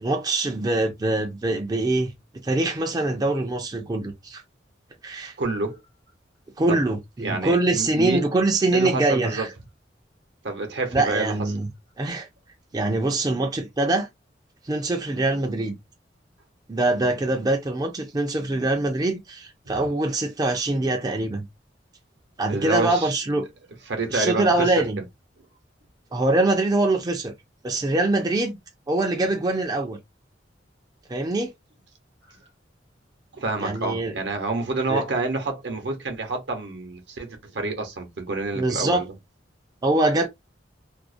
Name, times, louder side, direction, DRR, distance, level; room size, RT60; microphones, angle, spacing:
voice 1, 0.0-2.1 2.4-4.4 5.0-5.3 6.6-9.5 10.9-11.7 12.0-12.3 12.7-14.1 14.6-15.8 16.7-21.4 22.4-23.5 24.1-25.0 26.1-27.3 27.6-28.6 28.9-30.0 31.1-31.5 33.6-34.1 34.9-35.0 38.6-39.0 39.8-40.3, right 2 dB, 20° right, 0.4 m, -23 dB
voice 2, 5.4-5.8 6.7-6.8 7.2-8.2 8.7-9.5 10.4-11.5 19.6-19.8 22.5-23.2 23.9-25.0 33.3-39.1, right 3 dB, 70° right, 0.8 m, -28 dB
2.5 x 2.0 x 2.4 m
head